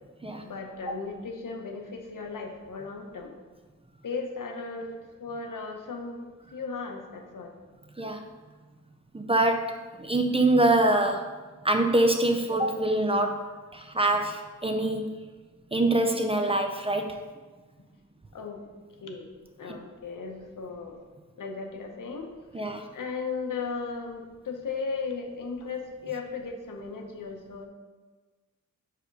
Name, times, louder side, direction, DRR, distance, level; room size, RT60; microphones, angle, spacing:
voice 1, 0.4-3.4 4.0-4.9 5.2-6.2 6.5-7.5 18.3-18.7 19.0-19.3 19.6-21.0 21.4-22.3 22.9-27.7, left 4 dB, 75° left, 2 dB, 0.9 m, -36 dB
voice 2, 9.1-11.2 11.6-13.4 13.7-15.1 15.7-17.2 22.5-22.9, right 2 dB, 20° right, 4 dB, 0.5 m, -24 dB
5.0 x 4.9 x 4.5 m, 1.3 s
wide cardioid pair, 100°, 32 cm